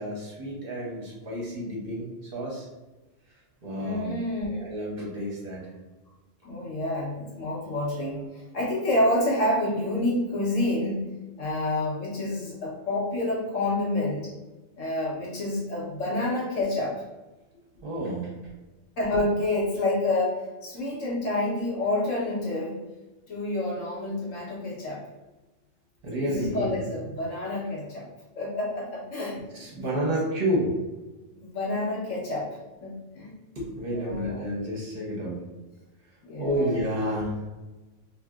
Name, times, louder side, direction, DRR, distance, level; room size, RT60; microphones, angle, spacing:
voice 1, 0.0-2.7 3.6-4.2 4.6-5.6 17.8-18.3 26.0-26.8 29.6-30.7 33.6-35.4 36.4-37.4, equal, 50° right, -4 dB, 0.9 m, -30 dB
voice 2, 3.7-4.6 6.4-11.1 11.4-14.3 14.8-17.0 19.0-22.8 23.3-25.0 26.1-28.1 28.4-29.4 31.4-32.5 32.8-33.3 33.9-34.4 36.2-36.8, left 1 dB, 85° left, -5 dB, 1.3 m, -28 dB
2.9 x 2.7 x 2.3 m, 1.1 s
omnidirectional pair, 1.3 m